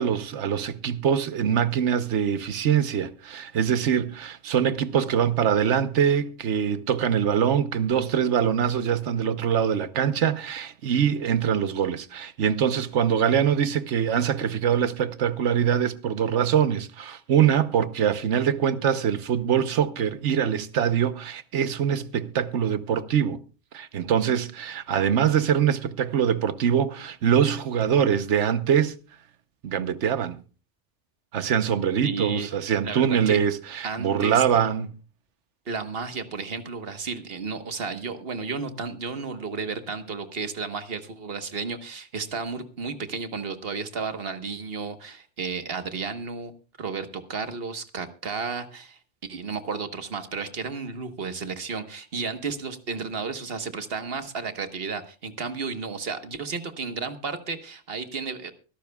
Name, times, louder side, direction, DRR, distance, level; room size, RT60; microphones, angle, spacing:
voice 1, 0.0-23.4 23.7-29.0 29.6-30.4 31.3-34.9, right 8 dB, 90° right, 1.2 m, -23 dB
voice 2, 32.0-32.5 32.8-33.4 33.8-34.4 35.7-46.5 46.8-58.5, right 5 dB, 55° right, 1.5 m, -33 dB
24.0 x 12.0 x 2.3 m
omnidirectional pair, 1.2 m